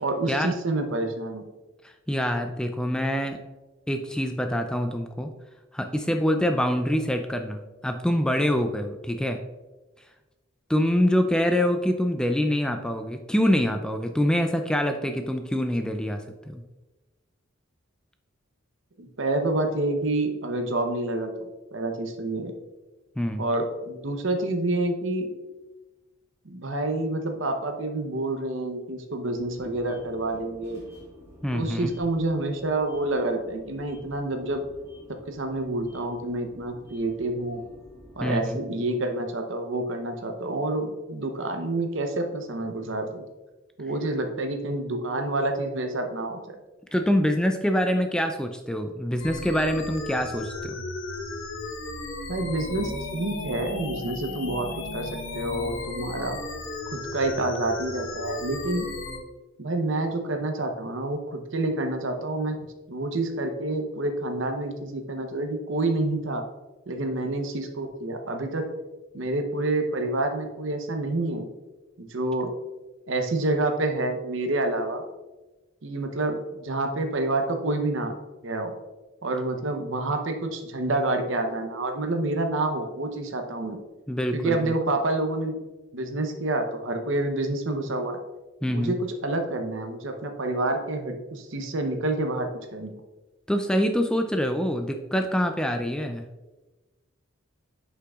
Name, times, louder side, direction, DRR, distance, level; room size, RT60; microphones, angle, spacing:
voice 1, 0.0-1.5 19.0-22.5 23.4-25.3 26.4-30.8 31.5-34.6 35.3-37.6 38.2-43.3 43.8-46.4 52.3-54.7 54.9-56.4 56.9-58.9 59.6-62.6 62.9-66.4 66.9-68.6 69.1-71.5 72.0-72.5 73.1-75.0 75.8-78.1 78.4-78.7 79.2-83.8 84.3-85.6 85.9-88.2 88.7-92.9, right 2 dB, 65° right, 5 dB, 0.8 m, -28 dB
voice 2, 1.8-3.4 3.9-5.3 5.7-9.4 10.7-16.6 23.2-23.5 31.4-31.9 38.2-38.6 46.9-50.8 84.1-84.7 88.6-88.9 93.5-96.2, equal, 5° left, 5 dB, 0.3 m, -25 dB
sound 1, 29.3-38.4, left 1 dB, 15° right, 2.2 m, -51 dB
sound 2, 49.2-59.2, left 2 dB, 65° left, 0.9 m, -35 dB
9.8 x 5.7 x 2.4 m, 1.2 s
head